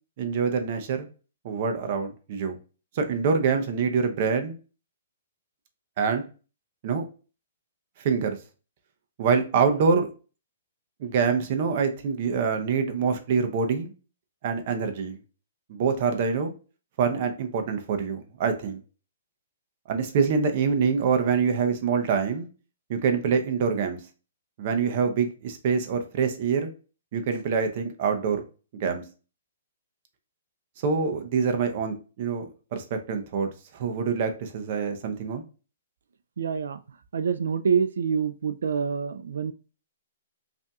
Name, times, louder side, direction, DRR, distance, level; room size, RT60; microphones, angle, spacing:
voice 1, 0.2-1.1 1.4-2.5 3.0-4.6 6.0-6.2 6.8-7.0 8.0-8.4 9.2-10.1 11.0-13.9 14.4-15.2 15.7-16.5 17.0-18.8 19.9-22.5 22.9-24.0 24.6-26.7 27.1-28.4 28.7-29.0 30.8-35.4, right 5 dB, 45° right, 0.6 m, -25 dB
voice 2, 36.4-36.8 37.1-39.5, right 6 dB, 85° right, 0.3 m, -26 dB
5.3 x 2.6 x 2.3 m
hypercardioid pair, 160°, 0 cm